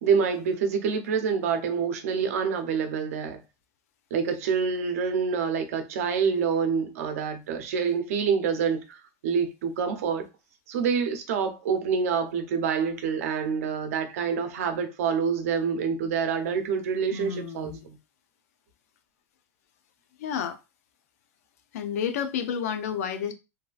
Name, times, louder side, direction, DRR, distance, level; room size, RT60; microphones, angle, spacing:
voice 1, 0.0-3.4 4.1-10.3 10.7-18.0, right 6 dB, 90° right, 0.6 m, -27 dB
voice 2, 17.1-17.9 20.2-20.6 21.7-23.3, left 8 dB, 85° left, 0.5 m, -30 dB
2.7 x 2.3 x 2.4 m
supercardioid pair, 120°, 8 cm